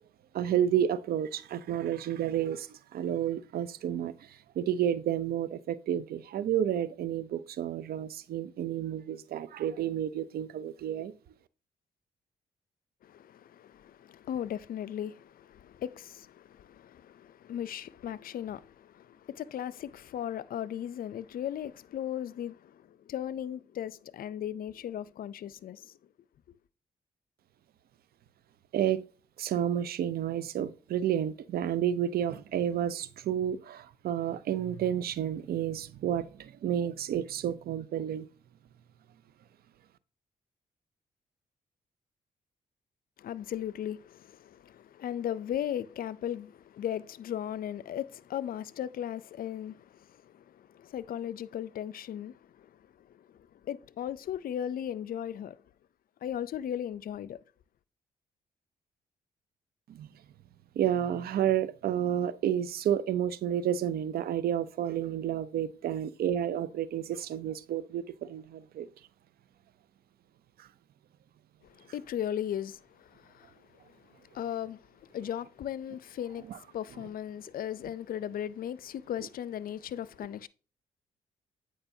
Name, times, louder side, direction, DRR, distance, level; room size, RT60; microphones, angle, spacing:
voice 1, 0.3-11.1 28.7-29.0 29.4-38.3 59.9-60.1 60.8-68.9 70.6-70.7 76.5-76.6, right 10 dB, 65° right, 0.6 m, -31 dB
voice 2, 13.0-26.0 26.5-26.6 43.2-55.6 56.2-57.4 71.6-80.5, left 10 dB, 60° left, 0.4 m, -37 dB
8.7 x 5.0 x 2.7 m
hypercardioid pair, 45°, 17 cm